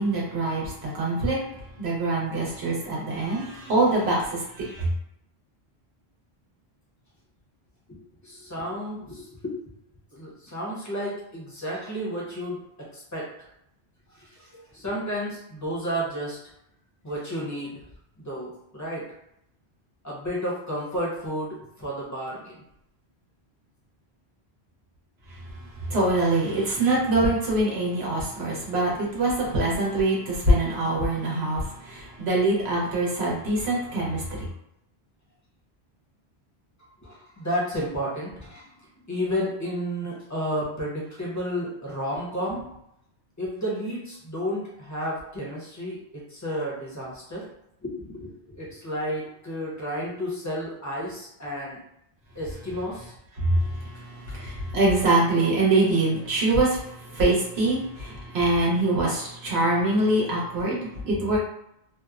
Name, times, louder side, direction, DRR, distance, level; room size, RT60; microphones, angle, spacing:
voice 1, 0.0-1.4 1.8-4.9 25.3-34.5 53.4-61.4, right 2 dB, 75° right, -4 dB, 1.1 m, -24 dB
voice 2, 7.9-9.6 10.1-12.6 12.9-13.3 14.1-16.4 17.0-17.8 18.2-19.0 20.0-22.6 37.0-38.7 39.1-42.6 43.4-47.5 47.8-51.8 52.3-53.1 54.3-54.4, equal, 20° left, -5 dB, 0.7 m, -32 dB
2.8 x 2.0 x 2.4 m, 0.79 s
omnidirectional pair, 1.1 m